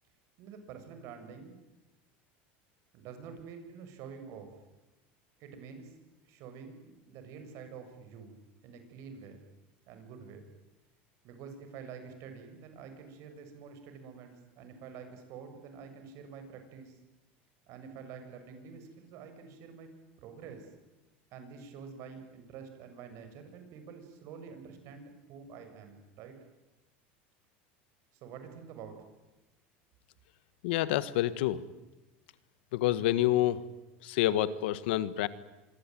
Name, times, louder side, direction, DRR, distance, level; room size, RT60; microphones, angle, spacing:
voice 1, 0.4-1.6 2.9-4.6 5.4-5.9 6.3-8.4 8.6-9.4 9.9-10.5 11.2-17.0 17.7-19.9 20.2-20.7 21.3-26.4 28.1-29.0, right 6 dB, 60° right, 7 dB, 7.2 m, -48 dB
voice 2, 30.6-31.6 32.7-33.6 34.0-35.3, left 14 dB, 80° left, 15 dB, 1.7 m, -28 dB
26.0 x 23.5 x 9.3 m, 1.1 s
supercardioid pair, 120°, 6 cm